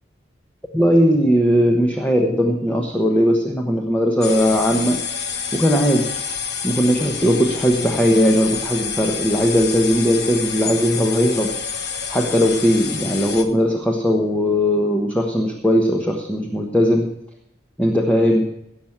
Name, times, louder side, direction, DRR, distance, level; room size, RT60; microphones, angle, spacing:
voice 1, 0.7-5.0 5.5-6.2 6.6-11.5 12.1-17.2 17.8-18.4, equal, 10° left, 2 dB, 1.1 m, -18 dB
sound 1, 4.2-13.4, left 6 dB, 55° left, 1.2 m, -28 dB
17.5 x 7.4 x 5.9 m, 0.80 s
head